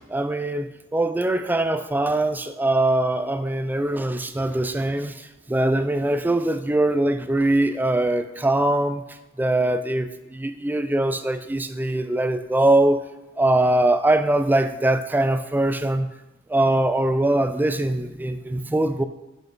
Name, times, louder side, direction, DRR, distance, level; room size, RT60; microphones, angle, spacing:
voice 1, 0.1-9.0 9.4-13.0 13.4-16.1 16.5-19.0, right 1 dB, 10° right, 10 dB, 0.3 m, -22 dB
6.7 x 6.0 x 3.9 m, 1.0 s
head